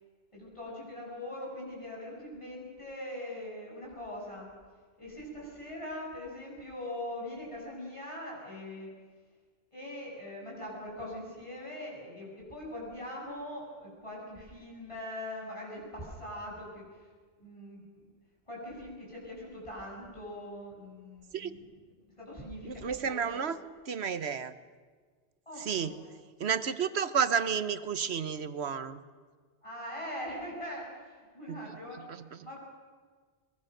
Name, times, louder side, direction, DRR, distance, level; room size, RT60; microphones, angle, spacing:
voice 1, 0.3-4.5 5.0-8.9 9.7-16.8 17.4-17.8 18.5-21.7 22.2-23.5 25.5-26.0 29.6-30.9 31.3-32.0 32.4-32.6, left 1 dB, 25° left, -3 dB, 8.1 m, -42 dB
voice 2, 22.6-23.6 23.9-24.5 25.6-26.0 26.4-29.0 31.5-31.6 32.1-32.5, right 7 dB, 70° right, 13 dB, 1.3 m, -31 dB
23.0 x 22.0 x 6.6 m, 1.6 s
omnidirectional pair, 1.1 m